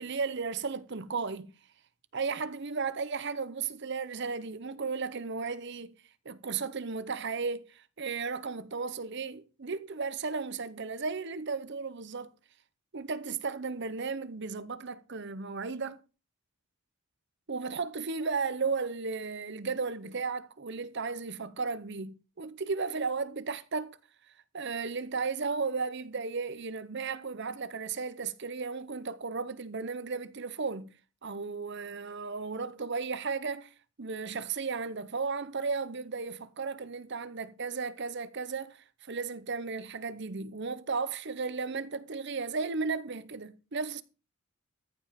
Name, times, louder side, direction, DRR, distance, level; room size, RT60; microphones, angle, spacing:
voice 1, 0.0-1.5 2.1-6.0 6.2-12.3 12.9-16.0 17.5-24.0 24.5-30.9 31.2-44.0, right 4 dB, 55° right, 0.8 m, -35 dB
14.0 x 5.3 x 5.8 m
head